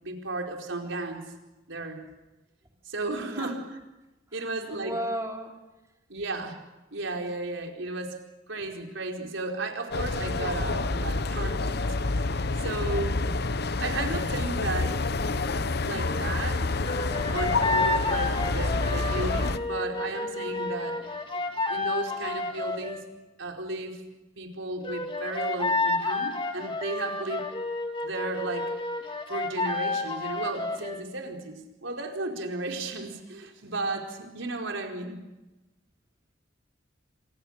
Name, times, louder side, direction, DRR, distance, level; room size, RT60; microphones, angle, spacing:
voice 1, 0.0-1.2 1.7-2.0 2.8-3.6 4.3-4.9 6.1-6.6 6.9-8.2 8.5-11.8 12.3-13.2 13.8-15.0 15.5-16.8 17.3-23.0 23.4-24.0 24.4-27.4 28.0-28.7 29.3-35.2, right 2 dB, 80° right, 3 dB, 4.5 m, -34 dB
voice 2, 3.2-3.6 4.3-5.6, right 1 dB, 15° right, 1 dB, 3.3 m, -35 dB
sound 1, 9.9-19.6, left 3 dB, 55° left, 1.0 m, -28 dB
sound 2, 16.8-23.0 24.8-31.0, left 3 dB, 25° left, 3.0 m, -30 dB
29.0 x 27.0 x 6.6 m, 1.0 s
head